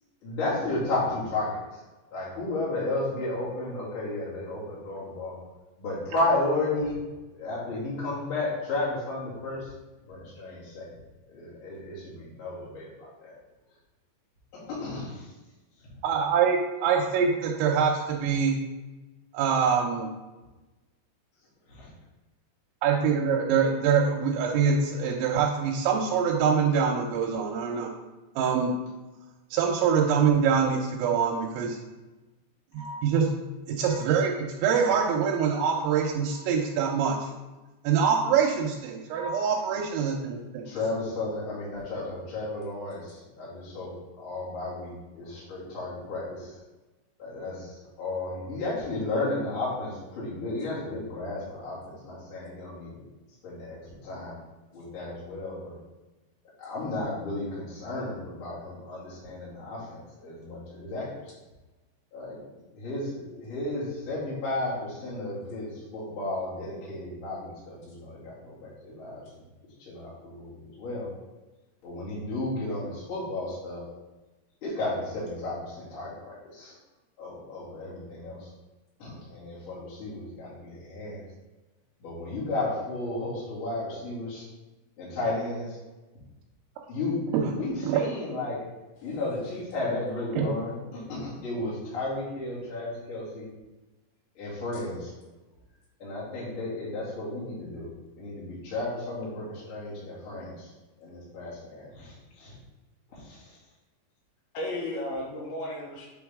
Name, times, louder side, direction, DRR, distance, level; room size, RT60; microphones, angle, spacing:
voice 1, 0.2-1.6 2.1-5.4 5.8-7.0 7.3-9.7 10.1-10.8 11.3-13.3 14.7-15.3 21.7-21.9 40.6-46.5 47.2-53.0 53.4-54.4 54.7-55.8 56.6-61.2 62.1-62.4 62.7-69.4 69.8-71.1 71.8-73.8 74.6-76.7 77.2-78.5 79.0-81.2 82.0-84.4 85.0-85.8 86.9-88.6 89.0-93.5 94.4-95.1 96.0-97.9 98.2-100.7 101.0-102.5 103.1-103.5, left 2 dB, 40° left, -8 dB, 2.2 m, -33 dB
voice 2, 16.0-18.6 19.3-20.1 22.8-27.9 28.4-28.7 29.5-31.8 33.0-33.3 33.7-37.3 37.8-40.7 87.3-87.5 87.8-88.0 90.4-90.5, right 6 dB, 85° right, -1 dB, 3.0 m, -24 dB
voice 3, 32.7-33.1 33.9-34.1 34.9-35.2 36.3-36.4 39.1-39.7 42.0-42.1 89.0-89.1 104.5-106.1, left 1 dB, 70° left, -3 dB, 2.5 m, -36 dB
8.1 x 3.9 x 3.5 m, 1.1 s
omnidirectional pair, 5.2 m